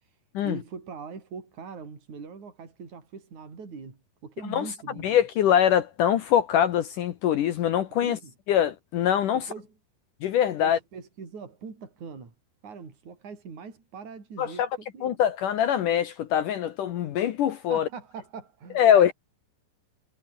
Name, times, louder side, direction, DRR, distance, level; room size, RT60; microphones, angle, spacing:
voice 1, 0.4-5.2 7.9-8.3 9.3-9.7 10.6-12.3 12.6-15.2 17.7-19.1, right 5 dB, 40° right, 6.5 m, -42 dB
voice 2, 5.0-8.2 8.5-9.5 10.2-10.8 14.4-14.7 15.0-17.9 18.8-19.1, left 10 dB, 75° left, 1.9 m, -23 dB
omnidirectional pair, 5.4 m